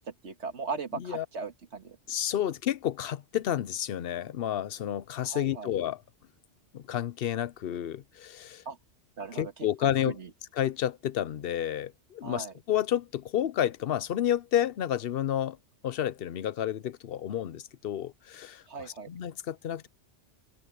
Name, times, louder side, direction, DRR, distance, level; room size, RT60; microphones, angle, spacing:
voice 1, 0.0-2.0 5.3-5.7 8.7-8.8 9.2-9.7 10.1-10.3 12.2-12.5 18.7-19.1, right 4 dB, 75° right, 2.0 m, -38 dB
voice 2, 0.9-1.2 2.1-6.0 6.7-8.6 9.3-10.1 10.6-15.6 15.8-19.9, left 10 dB, 60° left, 0.8 m, -30 dB
open air
omnidirectional pair, 1.2 m